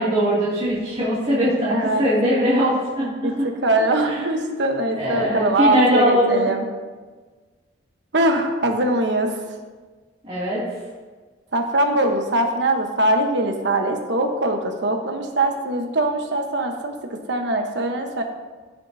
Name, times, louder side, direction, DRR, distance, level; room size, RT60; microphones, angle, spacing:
voice 1, 0.0-3.5 4.0-4.2 4.9-6.5 10.2-10.6, equal, 35° right, -11 dB, 2.5 m, -21 dB
voice 2, 1.7-2.1 3.0-3.3 3.6-6.7 8.1-9.4 11.5-16.9 17.3-18.2, right 1 dB, 70° right, 4 dB, 1.1 m, -22 dB
15.5 x 7.3 x 2.8 m, 1.4 s
head